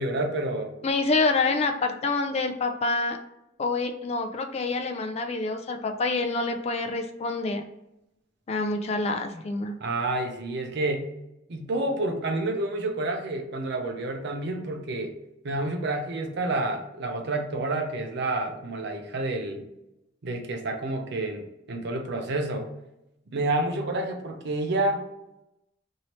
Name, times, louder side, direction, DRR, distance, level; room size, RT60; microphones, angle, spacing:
voice 1, 0.0-0.7 9.8-11.0 11.5-15.2 15.4-19.7 20.2-22.7 23.3-25.0, right 2 dB, 60° right, 4 dB, 0.6 m, -29 dB
voice 2, 0.8-3.2 3.6-7.6 8.5-9.7, left 3 dB, 35° left, 5 dB, 0.4 m, -27 dB
2.9 x 2.7 x 3.0 m, 0.88 s
head